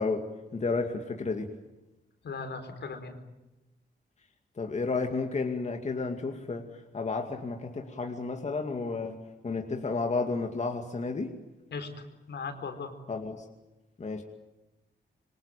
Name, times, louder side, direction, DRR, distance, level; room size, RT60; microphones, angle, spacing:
voice 1, 0.0-1.5 4.6-11.4 13.1-13.5 14.0-14.2, left 4 dB, 40° left, 3 dB, 2.4 m, -32 dB
voice 2, 2.2-3.2 11.7-13.0, left 4 dB, 75° left, 7 dB, 4.5 m, -38 dB
26.5 x 24.0 x 9.1 m, 1.0 s
wide cardioid pair, 130°, 18 cm